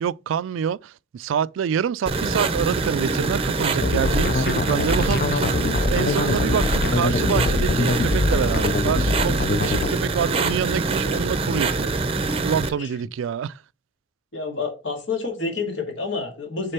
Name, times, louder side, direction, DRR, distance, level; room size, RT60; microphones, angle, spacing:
voice 1, 0.0-11.9 12.4-13.5, right 8 dB, 90° right, 0.3 m, -26 dB
sound 1, 2.1-12.7, right 3 dB, 30° right, 0.6 m, -24 dB
sound 2, 3.8-9.9, left 3 dB, 50° left, 0.4 m, -24 dB
voice 2, 14.3-16.7, left 4 dB, 70° left, 2.0 m, -28 dB
6.6 x 3.8 x 4.3 m
head